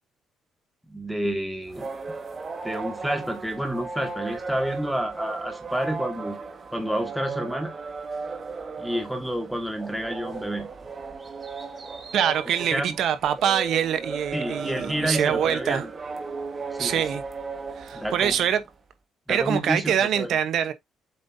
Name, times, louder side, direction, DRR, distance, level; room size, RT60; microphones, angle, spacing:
voice 1, 0.9-1.9 2.6-6.4 6.7-7.7 8.8-10.7 12.7-13.0 14.3-15.9 16.8-17.0 17.9-18.4 19.3-20.4, equal, ahead, 1.7 m, -29 dB
sound 1, 1.7-18.7, right 4 dB, 30° right, 1.5 m, -36 dB
voice 2, 12.1-15.8 16.8-17.2 17.8-18.6 19.3-20.7, right 9 dB, 65° right, 1.0 m, -24 dB
7.7 x 5.2 x 2.7 m
cardioid pair, 115°, 0 cm